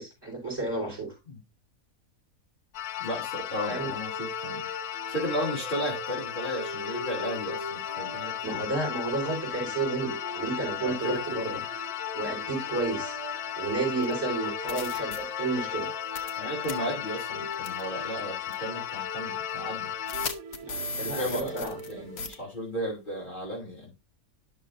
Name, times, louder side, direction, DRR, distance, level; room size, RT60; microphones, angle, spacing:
voice 1, 0.0-1.1 3.7-3.9 8.2-11.6 12.1-13.2 13.6-15.9 20.6-22.0, right 3 dB, 15° right, -2 dB, 5.1 m, -32 dB
sound 1, 2.7-20.3, left 12 dB, 90° left, 1.1 m, -35 dB
voice 2, 3.0-4.6 5.1-8.6 10.7-11.6 16.4-19.9 21.0-23.9, equal, 35° left, -4 dB, 3.2 m, -35 dB
sound 2, 4.0-22.5, right 2 dB, 55° right, 1.5 m, -43 dB
sound 3, 14.0-14.1 14.7-15.2 16.2-16.4 16.6-16.7 17.6-17.8 18.5-18.6 20.1-21.9 22.2-22.3, left 3 dB, 50° left, 1.1 m, -35 dB
11.0 x 6.2 x 2.6 m, 0.25 s
omnidirectional pair, 1.5 m